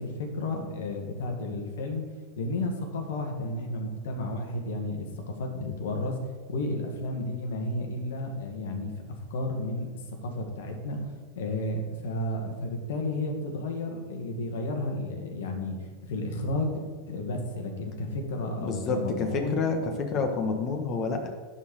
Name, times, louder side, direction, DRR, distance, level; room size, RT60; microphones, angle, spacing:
voice 1, 0.0-2.0 2.4-6.2 6.5-9.9 10.2-11.0 11.4-15.8 16.0-16.7 17.1-19.9, left 2 dB, 80° left, 3 dB, 1.9 m, -32 dB
voice 2, 18.5-21.3, left 4 dB, 40° left, 4 dB, 1.3 m, -29 dB
11.0 x 4.4 x 6.5 m, 1.5 s
hypercardioid pair, 115°, 0 cm